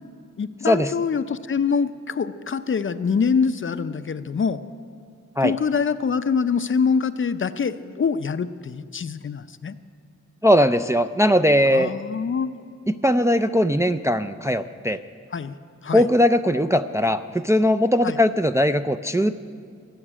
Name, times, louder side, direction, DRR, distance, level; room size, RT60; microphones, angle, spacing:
voice 1, 0.4-4.6 5.4-9.7 11.7-12.6 15.3-15.6 15.8-16.1 18.0-18.2, left 5 dB, 45° left, 12 dB, 0.5 m, -24 dB
voice 2, 10.4-11.9 12.9-15.0 15.9-19.3, equal, 10° right, 8 dB, 0.3 m, -19 dB
16.0 x 7.2 x 9.9 m, 2.3 s
wide cardioid pair, 105°, 30 cm